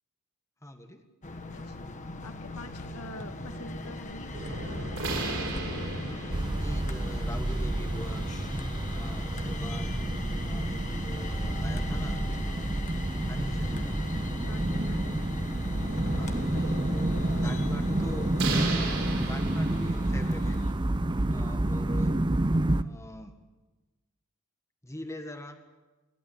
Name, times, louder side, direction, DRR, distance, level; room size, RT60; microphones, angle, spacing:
voice 1, 0.6-1.0 6.0-8.2 8.9-10.0 10.5-12.7 13.3-14.0 15.9-20.6 21.3-22.1 22.8-23.4 24.8-25.6, left 1 dB, 15° left, 6 dB, 1.7 m, -42 dB
sound 1, 1.2-20.7, left 2 dB, 35° left, 1.6 m, -40 dB
voice 2, 1.5-1.9 2.2-4.3 14.4-15.2, left 2 dB, 80° left, 6 dB, 1.9 m, -46 dB
sound 2, 2.8-21.2, right 2 dB, 65° right, 6.3 m, -38 dB
sound 3, 6.3-22.8, right 1 dB, 20° right, 0.7 m, -29 dB
28.5 x 12.5 x 8.7 m, 1.2 s
head